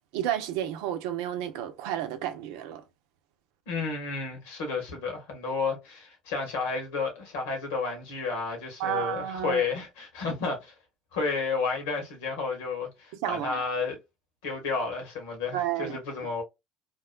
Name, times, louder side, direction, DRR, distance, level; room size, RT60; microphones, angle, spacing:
voice 1, 0.1-2.8 8.8-9.6 13.2-13.6 15.5-16.0, right 11 dB, 75° right, 0.6 m, -31 dB
voice 2, 3.7-10.7 11.1-14.0 14.4-16.4, left 4 dB, 80° left, 1.3 m, -31 dB
2.9 x 2.3 x 2.3 m
hypercardioid pair, 75°, 0 cm